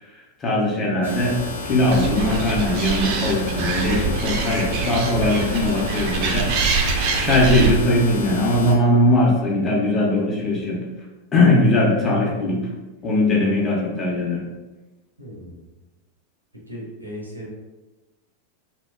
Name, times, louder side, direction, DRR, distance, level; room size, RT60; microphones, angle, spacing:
voice 1, 0.4-1.4 1.6-6.5 7.2-10.8 11.3-12.6 13.0-14.5, left 1 dB, 20° left, -4 dB, 0.6 m, -20 dB
sound 1, 1.0-8.7, left 2 dB, 70° left, 0.5 m, -31 dB
Animal, 1.9-7.7, right 5 dB, 45° right, 0.3 m, -25 dB
voice 2, 15.2-15.6 16.7-17.5, equal, 90° right, -3 dB, 0.6 m, -36 dB
2.7 x 2.1 x 2.3 m, 1.1 s
figure-of-eight pair, 90°, 0 cm